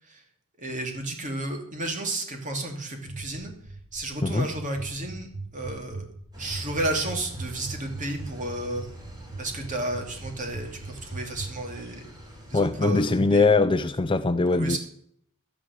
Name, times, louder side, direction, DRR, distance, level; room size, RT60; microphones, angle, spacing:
voice 1, 0.6-3.5 3.9-6.1 6.4-8.9 9.4-12.0 12.5-13.4 14.5-14.8, right 2 dB, 35° right, 2.7 m, -32 dB
sound 1, 3.1-11.5, right 3 dB, 55° right, 4.2 m, -38 dB
sound 2, 6.3-12.7, equal, 20° right, 2.9 m, -44 dB
voice 2, 12.5-14.8, left 3 dB, 20° left, 0.5 m, -22 dB
12.5 x 10.5 x 6.4 m
head